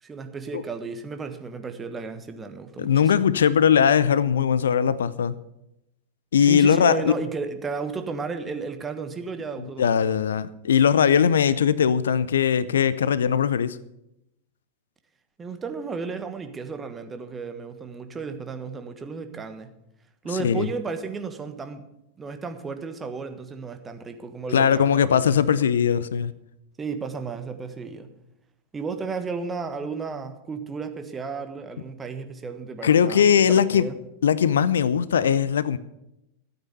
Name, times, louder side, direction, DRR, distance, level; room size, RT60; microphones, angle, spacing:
voice 1, 0.0-3.2 6.4-9.9 15.4-19.7 20.2-21.8 22.2-25.3 26.8-28.1 28.7-33.9, right 4 dB, 15° right, 1.3 m, -33 dB
voice 2, 2.8-5.4 6.3-7.1 9.8-13.8 20.4-20.7 24.5-26.3 32.8-33.9 34.2-35.8, left 8 dB, 65° left, 0.5 m, -20 dB
13.0 x 8.8 x 6.9 m
figure-of-eight pair, 90°, 0 cm